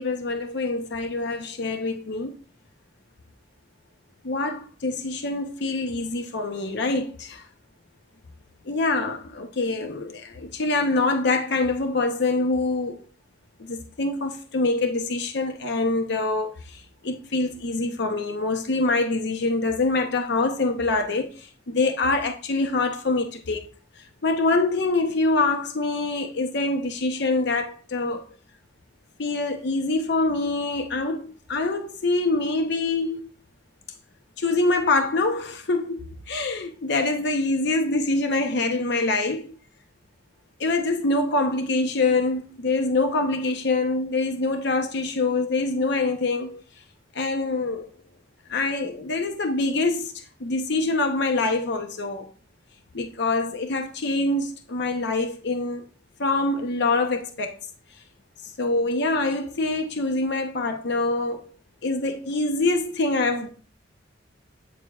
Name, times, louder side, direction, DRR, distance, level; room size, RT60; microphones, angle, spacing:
voice 1, 0.0-2.4 4.2-7.4 8.6-13.0 13.6-23.6 24.0-28.2 29.2-33.3 34.4-39.5 40.6-46.6 47.1-47.9 48.5-52.3 52.9-55.8 56.2-57.6 58.6-61.4 61.8-63.5, left 3 dB, 65° left, 0.7 m, -25 dB
8.5 x 6.5 x 2.4 m
head